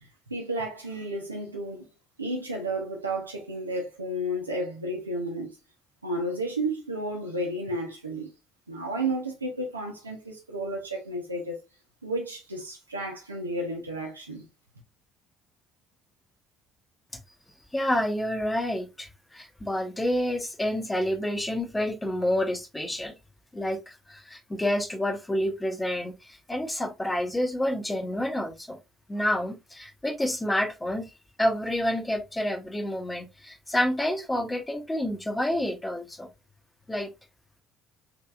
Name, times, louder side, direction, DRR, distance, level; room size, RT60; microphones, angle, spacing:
voice 1, 0.3-1.8 2.2-5.6 6.0-8.3 8.7-11.6 12.0-14.4, right 1 dB, 90° right, 0.7 m, -32 dB
voice 2, 17.7-23.1 23.5-28.8 29.1-31.1 31.4-36.3 36.9-37.1, left 1 dB, 15° left, 1.0 m, -28 dB
3.3 x 3.0 x 2.4 m
figure-of-eight pair, 55°, 0 cm